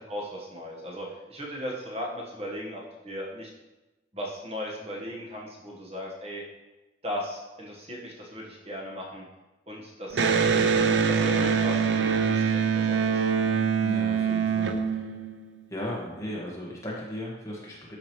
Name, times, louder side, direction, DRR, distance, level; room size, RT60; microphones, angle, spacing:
voice 1, 0.1-3.5 4.1-6.4 7.0-9.2 9.7-13.0 13.3-13.5, equal, 35° right, -3 dB, 1.3 m, -37 dB
Electric guitar, 10.1-15.6, right 6 dB, 75° right, 0.5 m, -24 dB
voice 2, 13.8-14.8 15.7-17.9, left 1 dB, 15° left, -4 dB, 1.5 m, -36 dB
12.0 x 5.0 x 3.1 m, 1.1 s
head